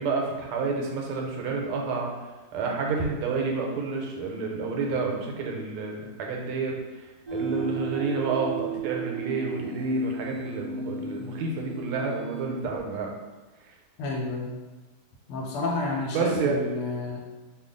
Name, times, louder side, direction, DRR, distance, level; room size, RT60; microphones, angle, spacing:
voice 1, 0.0-2.1 2.5-6.8 7.3-13.1 16.1-16.6, right 4 dB, 85° right, 0 dB, 1.5 m, -29 dB
sound 1, 7.3-12.4, right 4 dB, 60° right, 0.3 m, -34 dB
voice 2, 14.0-14.5 15.3-17.2, left 2 dB, 90° left, -1 dB, 1.6 m, -30 dB
3.4 x 2.4 x 3.7 m, 1.2 s
omnidirectional pair, 2.3 m